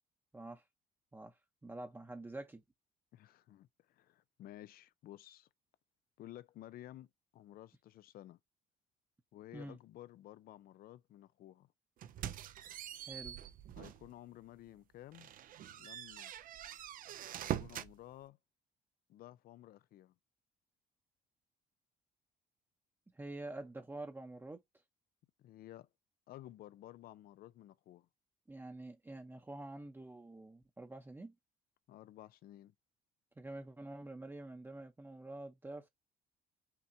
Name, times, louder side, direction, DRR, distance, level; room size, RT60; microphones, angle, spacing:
voice 1, 0.3-0.6 1.1-1.3 1.6-2.6 9.5-9.8 13.1-13.4 23.1-24.6 28.5-31.3 33.4-35.9, right 2 dB, 10° right, 0.8 m, -47 dB
voice 2, 3.1-5.5 6.2-8.4 9.3-11.7 13.8-15.3 15.8-16.3 17.6-18.4 19.1-20.1 25.4-25.9 26.3-28.1 31.9-32.7, left 13 dB, 60° left, 0.5 m, -54 dB
sound 1, 12.0-14.1 14.5-14.7 15.1-17.9, right 11 dB, 55° right, 0.5 m, -43 dB
5.8 x 2.8 x 2.7 m
cardioid pair, 110°, 17 cm